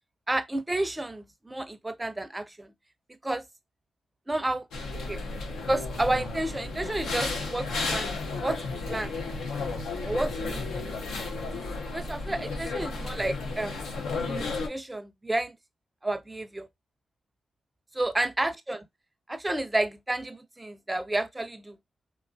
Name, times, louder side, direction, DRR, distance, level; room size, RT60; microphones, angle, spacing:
voice 1, 0.3-2.7 3.2-3.4 4.3-4.7 5.1-5.2 5.7-8.2 8.4-9.1 10.0-11.0 11.5-13.8 14.2-15.6 16.0-16.7 17.9-18.9 19.3-21.8, right 1 dB, 20° right, 0.5 m, -31 dB
sound 1, 4.7-14.7, left 3 dB, 85° left, 0.6 m, -33 dB
2.9 x 2.4 x 2.2 m
supercardioid pair, 50°, 0 cm